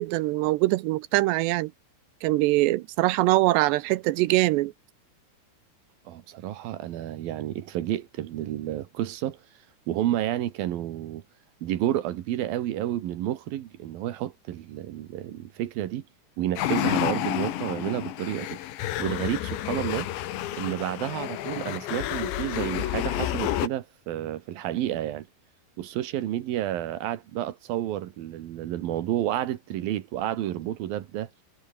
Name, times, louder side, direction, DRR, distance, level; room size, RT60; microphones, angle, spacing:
voice 1, 0.0-1.7 2.2-4.7, right 19 dB, 80° right, 2.6 m, -23 dB
voice 2, 6.1-9.4 9.9-11.2 11.6-16.0 16.4-18.6 19.0-20.1 20.5-25.3 25.8-31.3, right 12 dB, 65° right, 2.7 m, -30 dB
sound 1, 16.6-23.7, left 13 dB, 80° left, 3.8 m, -30 dB
omnidirectional pair, 5.3 m